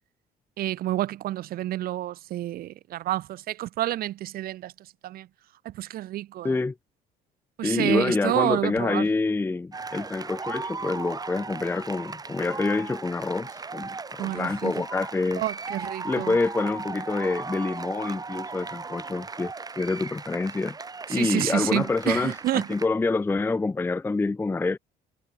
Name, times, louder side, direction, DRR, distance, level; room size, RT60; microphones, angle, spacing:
voice 1, 0.6-5.3 5.6-6.6 7.6-9.1 14.2-14.7 15.3-16.4 21.1-22.7, right 14 dB, 60° right, 0.6 m, -29 dB
voice 2, 7.6-13.9 14.2-15.4 16.0-20.8 21.1-24.8, left 3 dB, 15° left, 0.5 m, -27 dB
sound 1, 9.7-22.9, right 4 dB, 20° right, 1.9 m, -37 dB
cardioid pair, 110°, 17 cm